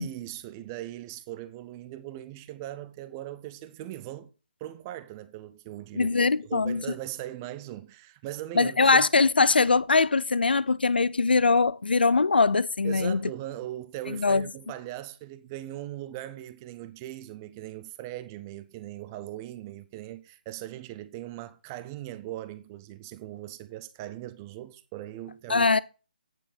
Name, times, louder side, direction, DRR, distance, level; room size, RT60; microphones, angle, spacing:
voice 1, 0.0-4.3 4.6-9.1 12.8-25.8, right 14 dB, 20° right, 0.3 m, -39 dB
voice 2, 5.9-6.8 8.6-13.2 14.2-14.4 25.5-25.8, left 4 dB, 85° left, 0.4 m, -22 dB
8.9 x 4.2 x 5.1 m
figure-of-eight pair, 155°, 5 cm